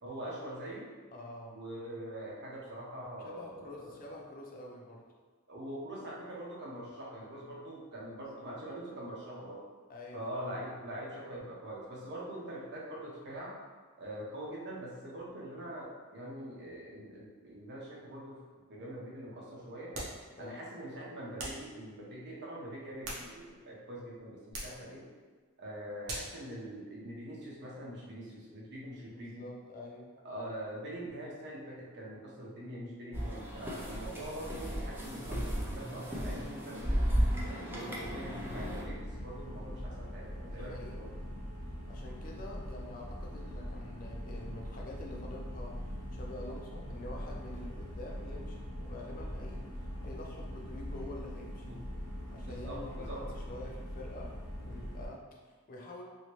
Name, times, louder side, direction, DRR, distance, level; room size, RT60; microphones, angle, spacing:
voice 1, 0.0-0.9 1.5-4.1 5.5-9.7 10.1-13.6 14.0-18.4 18.7-20.0 20.4-25.1 25.6-29.5 30.2-37.0 37.4-41.2 51.6-51.9 52.4-53.3, right 1 dB, 55° right, -4 dB, 0.8 m, -43 dB
voice 2, 1.1-1.6 3.2-5.1 8.4-8.6 9.9-10.4 20.3-20.6 29.1-30.1 40.5-41.0 41.9-51.8 52.3-56.0, left 1 dB, 40° left, -1 dB, 0.5 m, -47 dB
sound 1, 19.9-20.3 21.4-21.7 22.8-23.7 24.5-24.8 26.1-26.4, right 1 dB, 85° right, 0.8 m, -41 dB
sound 2, 33.1-38.8, equal, 10° right, 0.4 m, -34 dB
sound 3, 38.0-55.1, equal, 80° left, 0.9 m, -42 dB
2.9 x 2.7 x 3.0 m, 1.5 s
head